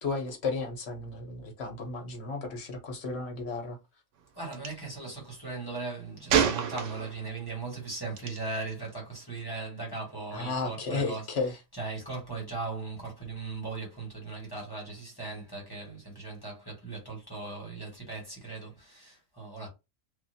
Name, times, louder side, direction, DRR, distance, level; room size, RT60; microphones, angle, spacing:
voice 1, 0.0-3.8 10.3-11.6, left 3 dB, 65° left, 1.2 m, -33 dB
voice 2, 4.3-19.7, right 3 dB, 20° left, 1.3 m, -38 dB
Gunshot gunfire, 4.5-4.7 6.3-7.3 8.2-8.4, right 8 dB, 85° right, 1.0 m, -27 dB
3.2 x 2.5 x 2.7 m
omnidirectional pair, 1.2 m